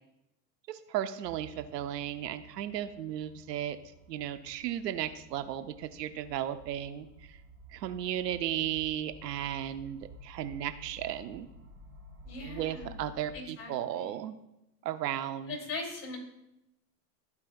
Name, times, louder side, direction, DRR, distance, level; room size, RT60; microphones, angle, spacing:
voice 1, 0.7-3.8 4.1-7.4 7.7-11.5 12.4-14.4 14.8-15.6, right 11 dB, 85° right, 11 dB, 0.7 m, -35 dB
sound 1, 1.2-13.3, equal, 45° right, 2.1 m, -52 dB
voice 2, 12.2-13.0 13.3-14.2 15.4-16.2, left 2 dB, 25° left, 0 dB, 2.6 m, -40 dB
14.5 x 4.8 x 2.3 m, 0.89 s
hypercardioid pair, 110°, 48 cm